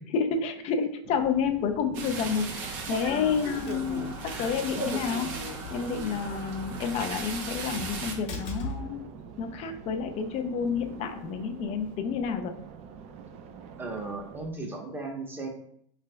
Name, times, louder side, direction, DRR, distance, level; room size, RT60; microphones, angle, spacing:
voice 1, 0.1-5.3 5.7-9.0 9.4-12.6, left 6 dB, 40° left, 6 dB, 0.5 m, -29 dB
sound 1, 1.0-14.5, right 6 dB, 40° right, 0.5 m, -46 dB
sound 2, 1.9-8.1, right 3 dB, 60° right, 1.1 m, -36 dB
sound 3, 2.4-11.9, left 2 dB, 60° left, 1.3 m, -44 dB
voice 2, 13.8-15.5, right 3 dB, 15° right, 0 dB, 0.9 m, -36 dB
4.8 x 3.4 x 2.2 m, 0.67 s
hypercardioid pair, 110°, 16 cm